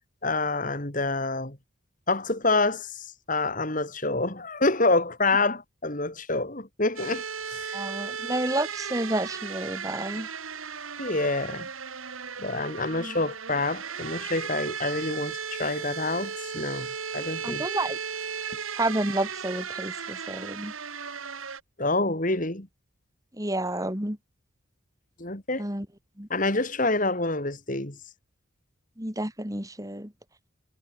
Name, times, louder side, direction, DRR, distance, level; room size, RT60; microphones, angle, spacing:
voice 1, 0.2-1.6 2.1-7.7 11.0-11.7 12.4-16.9 17.1-17.7 21.8-22.7 25.2-25.7 26.3-28.0, left 2 dB, 40° left, 3.0 m, -27 dB
sound 1, 7.0-21.6, right 6 dB, 80° right, 2.3 m, -36 dB
voice 2, 7.7-10.3 13.0-13.2 17.4-18.0 18.8-20.7 23.4-24.2 25.6-25.9 26.2-26.3 29.0-30.1, right 1 dB, 15° right, 3.5 m, -30 dB
head